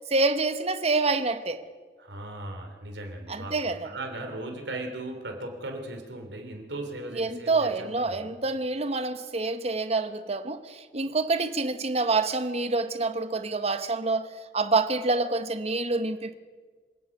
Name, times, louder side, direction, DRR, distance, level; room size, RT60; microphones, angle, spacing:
voice 1, 0.1-1.6 3.3-3.9 7.1-16.4, right 3 dB, 35° right, 1.1 m, -27 dB
voice 2, 2.0-8.2, right 2 dB, 85° right, 3.2 m, -37 dB
26.5 x 16.5 x 6.0 m
head